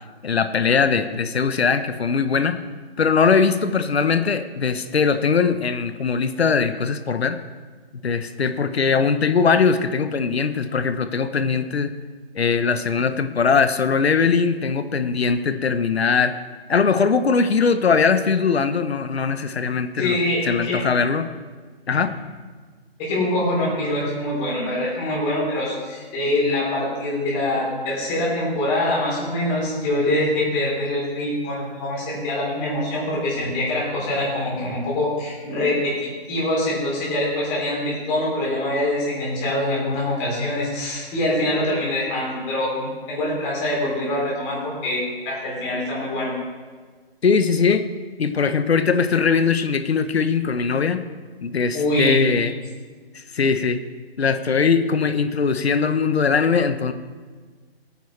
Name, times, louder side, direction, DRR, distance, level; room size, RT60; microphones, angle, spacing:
voice 1, 0.2-2.6 3.0-7.4 8.0-11.9 12.3-16.3 16.7-20.2 20.4-21.3 21.9-22.1 47.2-47.8 48.2-51.0 51.4-52.5 53.3-53.8 54.2-56.9, left 5 dB, 80° left, 10 dB, 1.0 m, -20 dB
voice 2, 20.0-20.8 21.9-22.0 23.0-46.3 51.7-52.2, left 1 dB, 15° left, -6 dB, 3.7 m, -24 dB
18.5 x 9.3 x 3.3 m, 1.5 s
hypercardioid pair, 165°, 31 cm